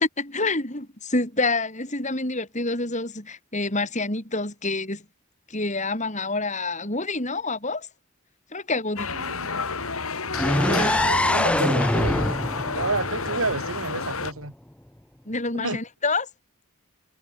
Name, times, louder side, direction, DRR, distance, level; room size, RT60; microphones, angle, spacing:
voice 1, 0.2-5.0 5.5-7.9 8.5-9.2 15.3-16.3, left 3 dB, 35° left, 6.1 m, -27 dB
sound 1, 9.0-14.3, left 4 dB, 80° left, 3.8 m, -30 dB
voice 2, 9.1-9.5 10.4-12.3 12.7-14.5 15.5-15.8, right 3 dB, 75° right, 6.4 m, -30 dB
Space Elephant, 10.3-14.2, left 1 dB, 5° left, 0.4 m, -24 dB
head